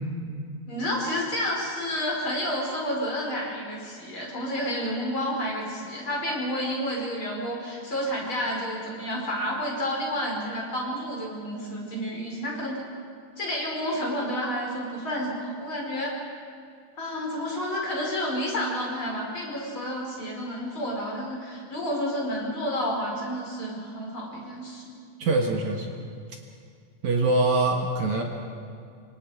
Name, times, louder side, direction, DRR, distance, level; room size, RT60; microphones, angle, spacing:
voice 1, 0.7-12.8 13.4-16.2 17.0-24.9, equal, 35° left, -2 dB, 5.8 m, -30 dB
voice 2, 25.2-26.0 27.0-28.2, right 2 dB, 60° right, 2 dB, 2.8 m, -23 dB
27.5 x 25.5 x 5.1 m, 2.3 s
omnidirectional pair, 4.0 m